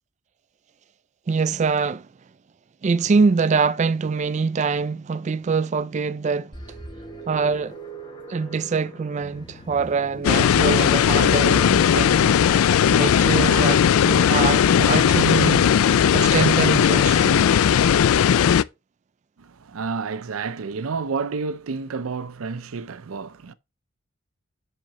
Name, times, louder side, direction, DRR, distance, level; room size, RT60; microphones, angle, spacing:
voice 1, 1.3-2.1 2.8-6.6 7.3-7.8 8.3-12.4 12.9-15.6 16.1-17.5, right 5 dB, 35° right, 0.3 m, -24 dB
sound 1, 6.5-17.2, right 1 dB, 20° left, 1.0 m, -42 dB
sound 2, 10.2-18.6, left 8 dB, 85° left, 0.3 m, -17 dB
voice 2, 19.4-23.5, right 4 dB, 85° right, 0.5 m, -30 dB
7.4 x 5.8 x 3.0 m
head